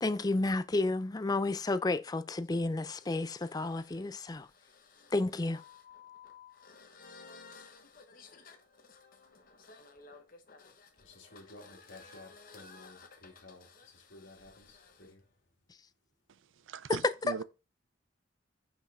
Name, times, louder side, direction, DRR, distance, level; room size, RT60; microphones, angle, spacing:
voice 1, 0.0-4.5 5.1-5.6 17.0-17.4, left 2 dB, 20° left, 0.4 m, -31 dB
sound 1, 1.4-15.1, left 5 dB, 45° left, 1.1 m, -56 dB
voice 2, 11.0-15.2, left 2 dB, 75° left, 1.8 m, -54 dB
voice 3, 16.7-17.4, right 6 dB, 80° right, 0.5 m, -39 dB
5.6 x 5.3 x 3.7 m
head